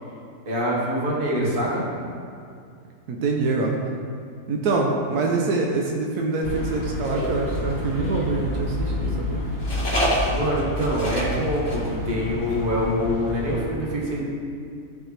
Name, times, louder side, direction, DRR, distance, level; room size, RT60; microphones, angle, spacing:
voice 1, 0.5-1.8 10.3-14.2, equal, 35° right, -5 dB, 1.7 m, -25 dB
voice 2, 3.1-3.8 4.5-9.4, right 3 dB, 80° right, 0 dB, 1.2 m, -25 dB
sound 1, 6.4-13.6, left 1 dB, 80° left, 2.3 m, -29 dB
sound 2, 7.0-8.4 9.6-11.4 11.7-11.9 12.1-12.2 12.5-12.8, right 1 dB, 40° left, 1.9 m, -28 dB
12.5 x 4.6 x 3.3 m, 2.4 s
omnidirectional pair, 1.6 m